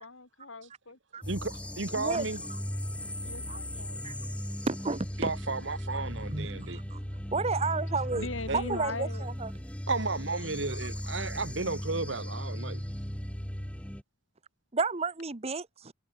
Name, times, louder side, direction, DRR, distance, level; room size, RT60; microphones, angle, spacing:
voice 1, 0.0-1.0 3.2-4.0 7.7-7.8 8.1-9.3, left 2 dB, 85° left, 4.0 m, -40 dB
sound 1, 1.2-14.0, equal, 5° left, 1.6 m, -37 dB
voice 2, 1.3-2.4 5.2-6.8 8.5-8.6 9.9-12.8, right 3 dB, 65° right, 2.0 m, -33 dB
voice 3, 1.9-2.6 3.5-3.6 4.0-4.1 4.7-5.3 6.3-6.5 6.9-7.0 7.3-9.5 14.7-15.9, right 4 dB, 30° right, 1.0 m, -32 dB
head